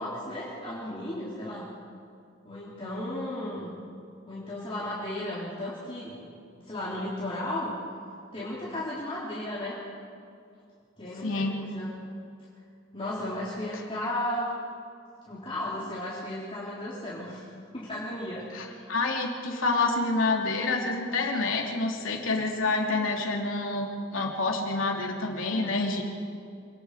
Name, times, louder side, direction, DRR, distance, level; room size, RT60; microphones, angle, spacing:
voice 1, 0.0-1.7 2.4-3.7 4.3-6.1 6.6-7.8 8.3-9.8 11.0-11.9 12.9-14.5 15.3-17.5 17.7-18.8, left 1 dB, 25° left, -8 dB, 3.9 m, -34 dB
voice 2, 11.2-11.6 18.5-26.0, left 3 dB, 75° left, 0 dB, 3.0 m, -28 dB
27.0 x 19.5 x 5.0 m, 2.4 s
head